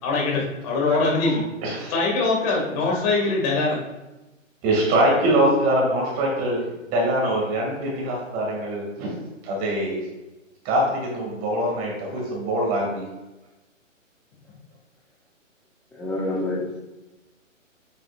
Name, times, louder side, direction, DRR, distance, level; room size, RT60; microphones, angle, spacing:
voice 1, 0.0-1.4 1.9-3.8, left 3 dB, 30° left, -2 dB, 2.4 m, -22 dB
voice 2, 1.6-1.9 2.9-3.0 4.6-6.6 6.9-9.1 9.4-10.0 10.6-13.1, right 1 dB, 20° right, -2 dB, 2.6 m, -23 dB
voice 3, 15.9-16.8, left 2 dB, 5° left, -8 dB, 0.9 m, -27 dB
8.3 x 7.7 x 2.6 m, 1.0 s
hypercardioid pair, 145°, 39 cm